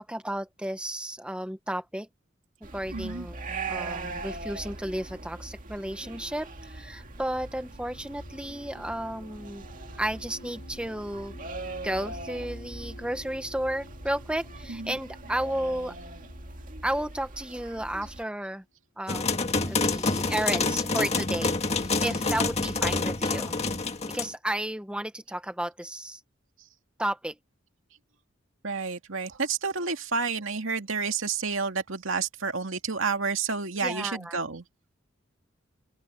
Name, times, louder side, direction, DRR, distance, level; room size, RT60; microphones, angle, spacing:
voice 1, 0.0-2.1 2.7-3.4 3.7-9.7 10.0-11.3 11.8-15.9 16.8-18.6 19.0-23.5 24.1-26.2 27.0-27.3 33.8-34.3, right 1 dB, 5° right, 1.1 m, -33 dB
sound 1, 2.6-18.2, right 3 dB, 40° right, 2.2 m, -41 dB
voice 2, 2.9-3.3 14.7-15.0 28.6-34.6, right 5 dB, 80° right, 2.4 m, -30 dB
sound 2, 5.4-18.6, left 1 dB, 75° left, 4.2 m, -51 dB
sound 3, 19.1-24.3, left 3 dB, 30° left, 1.8 m, -27 dB
open air
head